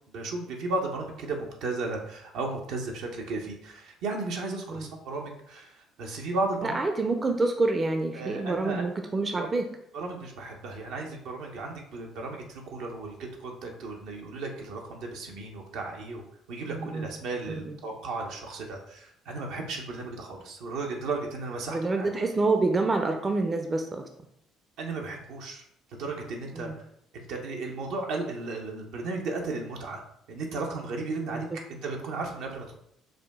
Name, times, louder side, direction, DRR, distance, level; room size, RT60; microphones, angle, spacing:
voice 1, 0.1-6.8 8.1-8.8 9.3-9.5 9.9-22.1 24.8-25.6 26.0-26.8 27.1-30.0 30.3-32.7, right 3 dB, 75° right, 1 dB, 0.8 m, -35 dB
voice 2, 6.6-9.7 16.7-17.1 17.5-17.8 21.7-24.0 26.5-26.8 31.3-31.4, right 3 dB, 30° right, 5 dB, 0.5 m, -27 dB
4.9 x 2.2 x 3.5 m, 0.74 s
hypercardioid pair, 65°, 0 cm